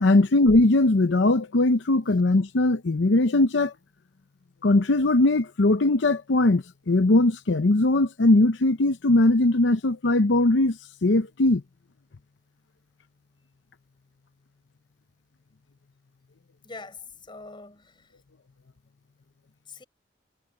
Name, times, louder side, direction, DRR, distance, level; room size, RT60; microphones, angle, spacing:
voice 1, 0.0-3.7 4.6-11.6, left 2 dB, 85° left, 0.7 m, -20 dB
voice 2, 16.6-18.1 19.7-19.8, left 3 dB, 25° left, 4.6 m, -43 dB
head